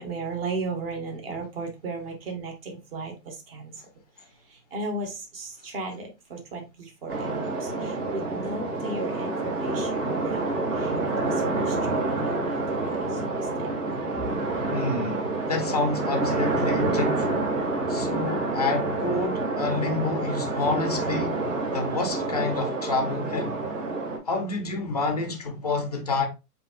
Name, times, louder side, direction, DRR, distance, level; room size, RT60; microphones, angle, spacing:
voice 1, 0.0-3.8 4.5-13.8, right 3 dB, 40° right, 1.3 m, -36 dB
sound 1, 7.1-24.2, right 2 dB, 55° right, 2.3 m, -28 dB
voice 2, 14.7-17.5 17.9-21.4 21.7-23.6 24.2-26.3, left 3 dB, 30° left, 0.4 m, -28 dB
7.6 x 2.8 x 2.3 m
hypercardioid pair, 175°, 46 cm